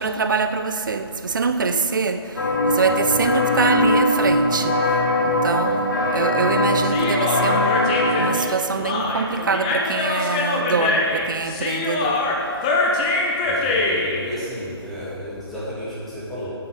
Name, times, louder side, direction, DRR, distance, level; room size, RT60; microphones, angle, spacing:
voice 1, 0.0-2.2 2.7-4.7 5.2-12.2, right 4 dB, 50° right, 9 dB, 0.6 m, -24 dB
sound 1, 2.4-8.4, left 1 dB, 50° left, 1.4 m, -21 dB
Human voice, 6.8-14.2, left 2 dB, 20° left, 0.8 m, -23 dB
voice 2, 13.4-16.5, equal, ahead, -11 dB, 1.8 m, -33 dB
8.6 x 7.7 x 4.9 m, 2.3 s
figure-of-eight pair, 145°, 14 cm